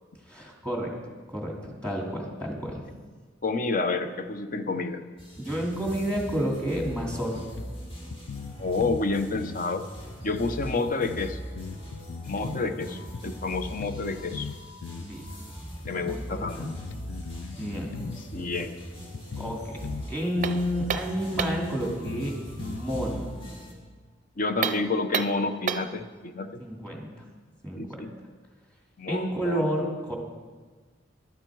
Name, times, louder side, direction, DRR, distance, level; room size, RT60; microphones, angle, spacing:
voice 1, 0.3-0.9 1.3-2.9 5.4-7.4 12.4-12.9 15.0-15.3 15.9-16.7 17.6-18.1 19.4-23.3 26.6-27.1 27.6-28.0 29.1-30.2, equal, 5° left, -1 dB, 2.5 m, -31 dB
voice 2, 3.4-5.1 8.6-9.9 10.2-11.4 12.3-14.5 15.9-16.6 18.3-18.8 24.4-26.6 27.7-28.1 29.0-29.6, left 3 dB, 45° left, 9 dB, 0.8 m, -29 dB
sound 1, 5.2-23.7, equal, 30° left, 2.3 m, -41 dB
sound 2, 7.1-7.2 7.6-7.7 8.1-9.1 9.3-9.6 10.3-10.4 10.9-12.7 13.1-13.2 13.8-14.1 14.3-15.1 15.9-16.0 16.5-18.2 18.6-18.7 19.1-20.1 20.4-20.6 21.4-21.5 21.9-23.2, left 6 dB, 70° left, 0.4 m, -39 dB
sound 3, 20.4-21.7 24.5-26.0, right 7 dB, 40° right, 0.5 m, -31 dB
14.0 x 12.0 x 4.7 m, 1.4 s
head